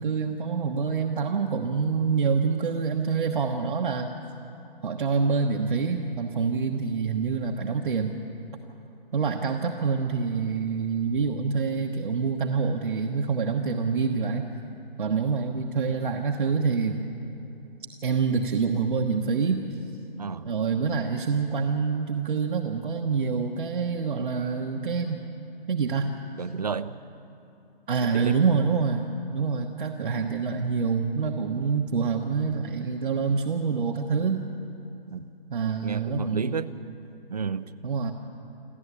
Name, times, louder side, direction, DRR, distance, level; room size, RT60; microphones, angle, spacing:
voice 1, 0.0-4.1 4.8-8.1 9.1-14.5 15.0-17.0 18.0-19.6 20.4-25.2 25.7-26.1 27.9-34.4 35.5-36.5 37.8-38.1, right 5 dB, 55° right, 2 dB, 1.3 m, -26 dB
voice 2, 20.2-20.5 26.4-27.0 28.0-28.4 35.1-35.3 35.8-36.8 37.3-37.7, right 6 dB, 40° right, 15 dB, 0.6 m, -32 dB
27.5 x 12.0 x 8.4 m, 2.9 s
hypercardioid pair, 170°, 30 cm